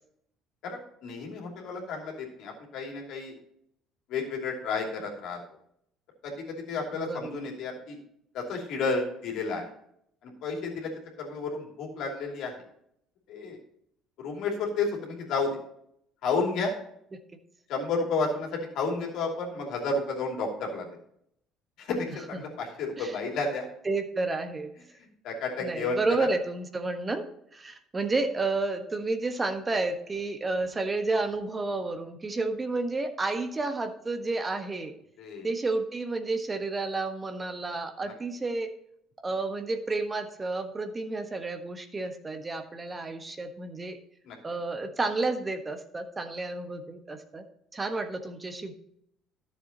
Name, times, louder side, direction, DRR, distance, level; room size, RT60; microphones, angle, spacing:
voice 1, 0.6-3.4 4.1-5.4 6.2-8.0 8.3-9.6 10.2-10.9 11.2-12.5 13.3-13.6 14.2-15.6 16.2-16.7 17.7-20.9 21.8-23.7 25.0-26.3 35.2-35.5 38.0-38.1 44.2-44.4, left 3 dB, 60° left, 0 dB, 2.8 m, -31 dB
voice 2, 6.9-7.3 17.1-17.2 23.0-23.1 23.8-24.7 25.6-27.3 27.5-34.9 35.4-38.7 39.2-44.0 44.4-47.4 47.7-48.7, right 3 dB, 25° right, 7 dB, 1.3 m, -31 dB
13.5 x 7.1 x 2.9 m, 0.71 s
hypercardioid pair, 55°, 0 cm